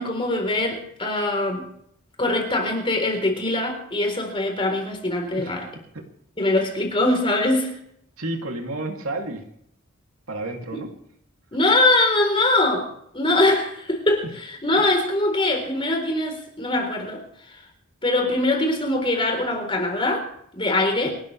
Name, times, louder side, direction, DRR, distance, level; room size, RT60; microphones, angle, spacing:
voice 1, 0.0-1.7 2.2-5.7 6.4-7.8 10.7-10.8 11.5-12.9 13.1-17.6 18.0-21.1, left 2 dB, 25° left, 3 dB, 3.9 m, -22 dB
voice 2, 8.2-9.4 10.3-10.9, right 2 dB, 75° right, 2 dB, 2.8 m, -30 dB
28.0 x 13.0 x 3.3 m, 0.69 s
head